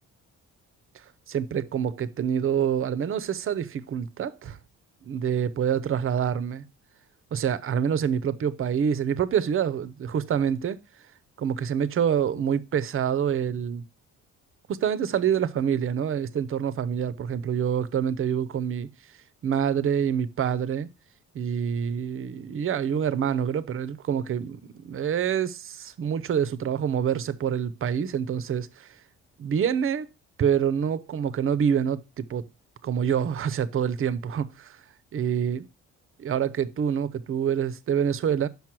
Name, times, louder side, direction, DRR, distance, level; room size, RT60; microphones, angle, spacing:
voice 1, 1.3-4.6 5.0-6.6 7.3-10.8 11.4-13.8 14.7-18.9 19.4-20.9 21.3-28.9 29.4-30.1 30.4-32.5 32.8-34.8 35.1-35.7 36.2-38.5, right 8 dB, 45° right, 0.6 m, -26 dB
6.0 x 5.4 x 4.4 m
cardioid pair, 90°, 30 cm